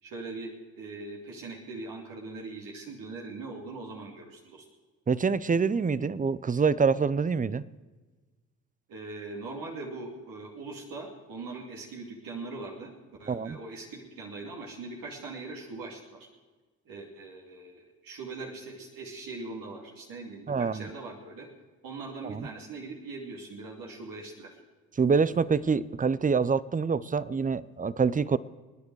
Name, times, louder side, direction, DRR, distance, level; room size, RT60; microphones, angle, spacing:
voice 1, 0.0-4.6 8.9-12.9 13.2-16.3 16.8-21.5 21.8-24.6, right 3 dB, 70° right, -1 dB, 2.8 m, -41 dB
voice 2, 5.1-7.6 13.3-13.6 20.5-20.9 22.2-22.5 25.0-28.4, right 5 dB, 25° right, 18 dB, 0.7 m, -26 dB
28.5 x 9.6 x 4.8 m, 1.3 s
supercardioid pair, 55°, 35 cm